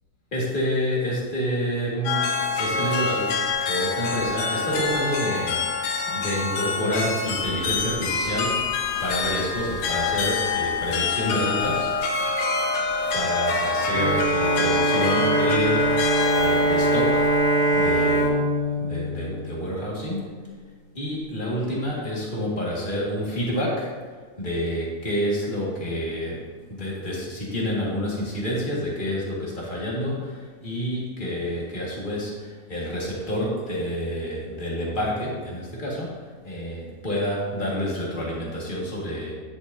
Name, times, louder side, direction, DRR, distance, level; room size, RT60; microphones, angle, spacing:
voice 1, 0.3-11.9 13.1-17.3 17.7-20.3 20.9-39.3, equal, 20° left, -5 dB, 1.5 m, -28 dB
sound 1, 2.0-18.3, left 4 dB, 75° left, 2.3 m, -26 dB
Bowed string instrument, 13.9-20.1, right 2 dB, 55° right, 1.8 m, -23 dB
10.5 x 8.2 x 2.8 m, 1.5 s
omnidirectional pair, 3.6 m